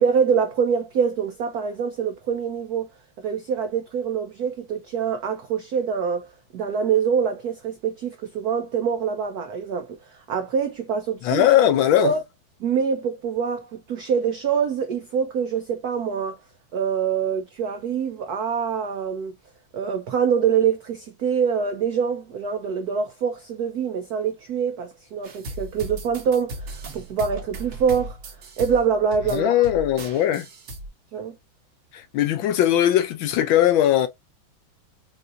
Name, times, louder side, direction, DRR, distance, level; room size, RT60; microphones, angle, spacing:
voice 1, 0.0-2.9 3.2-11.4 12.0-12.2 12.6-16.4 16.7-19.3 19.7-28.2 28.6-29.5 31.1-31.4, right 7 dB, 80° right, 0.8 m, -25 dB
voice 2, 11.2-12.1 29.3-30.4 32.1-34.1, left 11 dB, 75° left, 1.3 m, -19 dB
sound 1, 25.2-30.9, right 1 dB, 50° right, 0.8 m, -37 dB
5.6 x 2.6 x 2.5 m
omnidirectional pair, 2.4 m